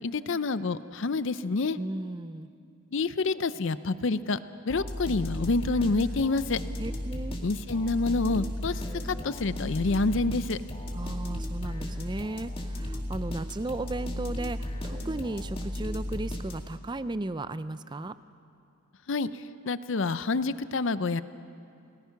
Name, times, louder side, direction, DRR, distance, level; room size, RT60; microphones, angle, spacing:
voice 1, 0.0-1.8 2.9-4.4 4.6-6.6 7.4-10.6 19.1-21.2, left 3 dB, 55° left, 14 dB, 0.6 m, -28 dB
voice 2, 1.7-2.5 6.8-7.4 10.9-18.1, right 2 dB, 20° right, 14 dB, 0.4 m, -35 dB
sound 1, 4.7-16.9, left 1 dB, 25° left, 2.0 m, -35 dB
29.5 x 18.5 x 5.9 m, 2.5 s
head